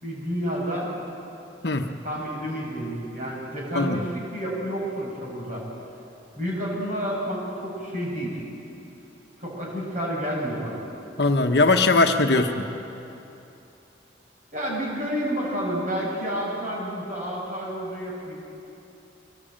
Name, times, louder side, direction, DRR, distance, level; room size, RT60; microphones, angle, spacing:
voice 1, 0.0-0.9 2.0-5.6 6.4-8.4 9.4-10.9 12.3-12.5 14.5-18.4, equal, 45° right, -4 dB, 6.2 m, -30 dB
voice 2, 11.2-12.7, left 3 dB, 60° left, 5 dB, 1.1 m, -20 dB
24.5 x 17.0 x 8.8 m, 2.9 s
head